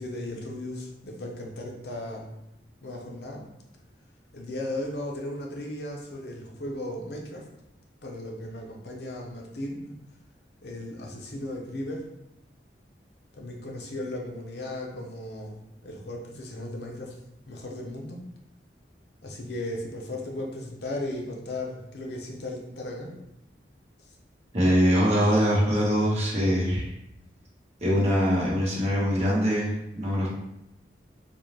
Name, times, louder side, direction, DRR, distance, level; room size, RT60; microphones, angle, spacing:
voice 1, 0.0-2.3 2.8-3.5 4.3-7.4 8.0-10.0 10.6-12.1 13.4-17.2 17.5-18.2 19.2-23.1, left 1 dB, 65° left, 0 dB, 0.6 m, -36 dB
voice 2, 24.5-26.9 27.8-30.3, equal, 40° right, -5 dB, 1.1 m, -23 dB
3.8 x 2.3 x 3.2 m, 0.84 s
head